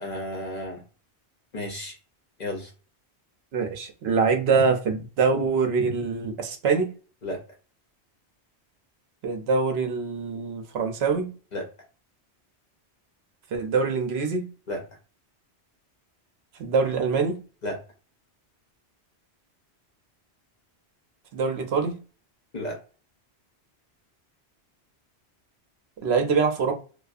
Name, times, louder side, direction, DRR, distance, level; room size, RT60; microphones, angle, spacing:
voice 1, 0.0-0.8 1.5-1.9 2.4-2.7 7.2-7.4 11.5-11.6 14.7-14.8 17.6-17.8 22.5-22.8, left 1 dB, 50° left, 0.7 m, -32 dB
voice 2, 3.5-6.9 9.2-11.3 13.5-14.5 16.6-17.4 21.3-22.0 26.0-26.8, right 5 dB, 70° right, 0.8 m, -24 dB
2.5 x 2.3 x 2.3 m
omnidirectional pair, 1.1 m